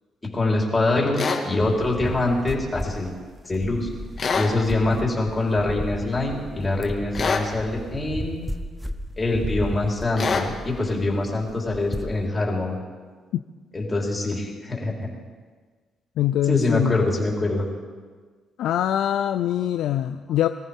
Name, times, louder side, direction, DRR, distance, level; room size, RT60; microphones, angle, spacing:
voice 1, 0.2-3.1 3.4-3.9 4.3-8.5 9.2-12.8 13.7-15.1 16.5-17.7, left 2 dB, 25° left, -2 dB, 4.0 m, -24 dB
sound 1, 1.2-1.4 4.2-4.5 7.1-7.5 10.2-10.5, left 5 dB, 45° left, 2.0 m, -24 dB
sound 2, 1.6-12.3, equal, 5° right, 1.0 m, -34 dB
voice 2, 16.2-17.0 18.6-20.5, left 11 dB, 80° left, 9 dB, 0.5 m, -23 dB
24.0 x 14.5 x 3.7 m, 1.5 s
cardioid pair, 90°, 0 cm